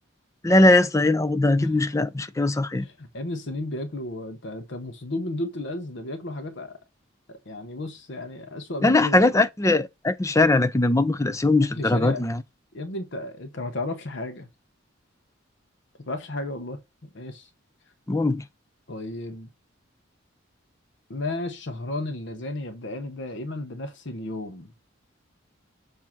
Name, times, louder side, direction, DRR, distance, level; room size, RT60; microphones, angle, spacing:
voice 1, 0.4-2.9 8.8-12.4 18.1-18.4, left 2 dB, 15° left, 0.5 m, -20 dB
voice 2, 2.7-6.8 7.3-9.3 11.8-12.2 12.7-14.5 16.0-17.5 18.9-19.5 21.1-24.7, left 2 dB, 60° left, 0.9 m, -33 dB
7.2 x 2.8 x 5.8 m
head